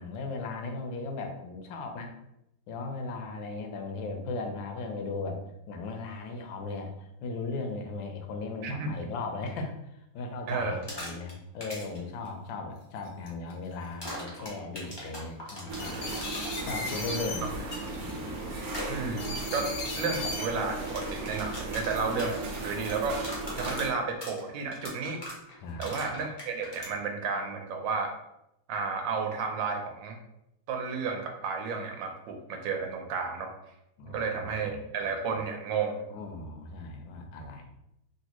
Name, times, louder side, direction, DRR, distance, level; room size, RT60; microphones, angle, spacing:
voice 1, 0.0-2.1 2.7-9.7 10.1-16.2 16.6-17.7 17.9-18.4 25.6-26.0 34.0-34.9 36.1-37.7, left 3 dB, 85° left, 4 dB, 1.3 m, -37 dB
voice 2, 10.5-10.8 18.9-23.2 23.6-25.2 25.8-28.1 28.7-30.2 30.7-33.5 34.0-36.0, right 4 dB, 80° right, 3 dB, 1.3 m, -32 dB
sound 1, 10.7-11.3 11.6-12.0 14.0-16.7 18.7-18.9 20.7-26.9, left 1 dB, 30° left, 0.5 m, -40 dB
sound 2, 12.3-12.4 13.0-13.5 14.3-14.5 14.9-15.1 15.8-17.4 17.7-18.3 19.2-20.5 21.0-21.5, left 3 dB, 65° left, 0.8 m, -37 dB
sound 3, 15.7-23.9, right 2 dB, 65° right, 1.0 m, -37 dB
3.2 x 2.7 x 2.9 m, 0.84 s
omnidirectional pair, 2.0 m